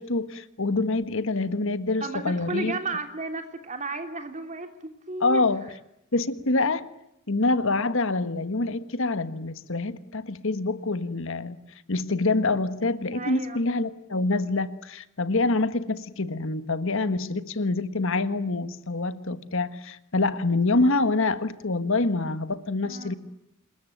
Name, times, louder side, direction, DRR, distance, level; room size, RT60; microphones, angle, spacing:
voice 1, 0.0-2.8 5.2-5.6 6.1-6.9 7.3-11.6 11.9-23.1, left 3 dB, 60° left, 13 dB, 1.4 m, -26 dB
voice 2, 2.0-5.4 13.1-13.6 22.8-23.2, right 3 dB, 35° right, 7 dB, 3.3 m, -33 dB
27.5 x 21.5 x 9.1 m, 0.82 s
head